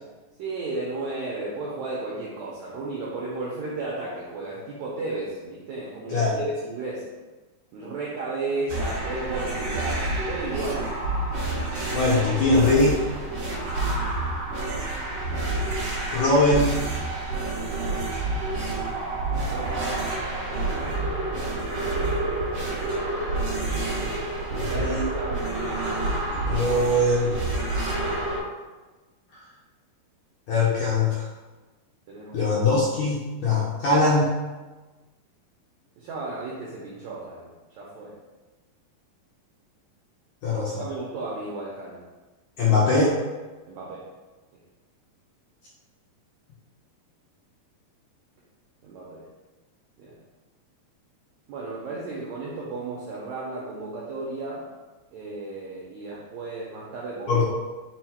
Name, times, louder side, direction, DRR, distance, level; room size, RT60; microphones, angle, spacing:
voice 1, 0.4-7.1 7.7-10.9 13.8-13.9 14.7-15.0 19.4-20.1 24.6-25.4 32.1-32.5 36.0-38.2 40.8-42.0 43.7-44.1 48.8-49.2 50.0-50.2 51.5-54.7 55.1-57.4, right 2 dB, 85° right, -5 dB, 1.6 m, -34 dB
voice 2, 6.1-6.4 11.9-13.0 16.1-16.7 24.5-25.0 26.3-27.4 30.5-31.2 32.3-34.3 40.4-40.8 42.6-43.2 57.3-57.4, left 2 dB, 75° left, -6 dB, 1.7 m, -21 dB
sound 1, 8.7-28.4, right 2 dB, 65° right, 1.8 m, -28 dB
5.5 x 2.1 x 4.3 m, 1.2 s
omnidirectional pair, 4.1 m